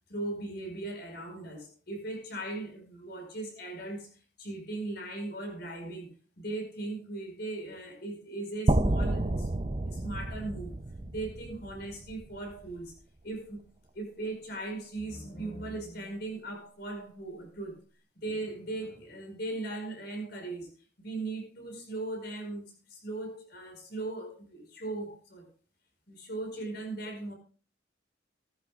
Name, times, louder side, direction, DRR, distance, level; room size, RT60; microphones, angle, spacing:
voice 1, 0.1-4.1 4.4-9.5 9.8-10.8 11.1-13.0 13.2-13.6 13.9-17.8 18.2-20.7 21.0-25.5 26.1-27.3, right 2 dB, 60° left, 3 dB, 5.3 m, -38 dB
sound 1, 8.7-12.7, right 1 dB, 30° right, 0.6 m, -30 dB
16.5 x 14.0 x 2.5 m, 0.36 s
head